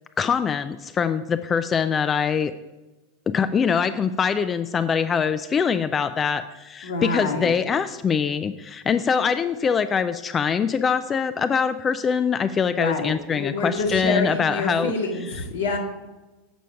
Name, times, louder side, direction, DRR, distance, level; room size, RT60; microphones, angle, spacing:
voice 1, 0.2-2.5 3.3-14.9, left 6 dB, 25° left, 10 dB, 0.3 m, -23 dB
voice 2, 6.8-7.6 12.7-15.8, left 3 dB, 85° left, 1 dB, 1.5 m, -27 dB
7.0 x 5.1 x 5.6 m, 1.1 s
hypercardioid pair, 100°, 0 cm